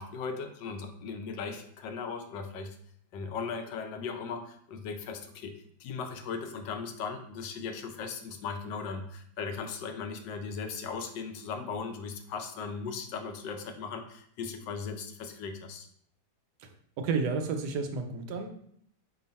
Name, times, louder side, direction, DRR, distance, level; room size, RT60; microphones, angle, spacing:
voice 1, 0.0-2.8 3.1-5.5 5.8-15.9, left 5 dB, 85° left, 5 dB, 1.3 m, -38 dB
voice 2, 17.0-18.5, right 4 dB, 75° right, 5 dB, 1.2 m, -31 dB
5.3 x 2.4 x 4.1 m, 0.65 s
omnidirectional pair, 1.9 m